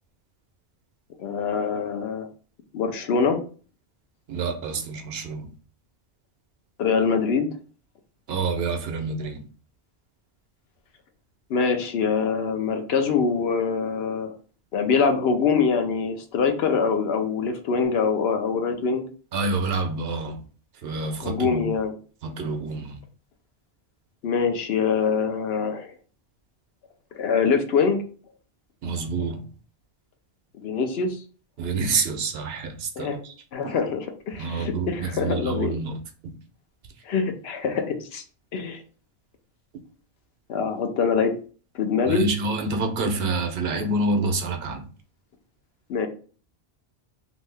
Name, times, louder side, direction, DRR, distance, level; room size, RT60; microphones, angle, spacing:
voice 1, 1.2-2.3 2.7-3.4 6.8-7.5 11.5-14.3 14.7-19.0 21.2-21.9 24.2-25.9 27.1-28.0 30.6-31.2 33.0-33.2 33.5-35.8 37.1-38.2 38.5-38.8 40.5-41.3 41.7-42.3 45.9-46.1, left 5 dB, 75° left, 0.8 m, -24 dB
voice 2, 4.3-5.5 8.3-9.4 19.3-20.4 20.8-21.8 22.2-23.0 28.8-29.5 31.6-33.3 33.6-33.7 34.4-35.9 42.1-44.9, right 3 dB, 70° right, 0.8 m, -27 dB
2.7 x 2.6 x 3.3 m
omnidirectional pair, 1.1 m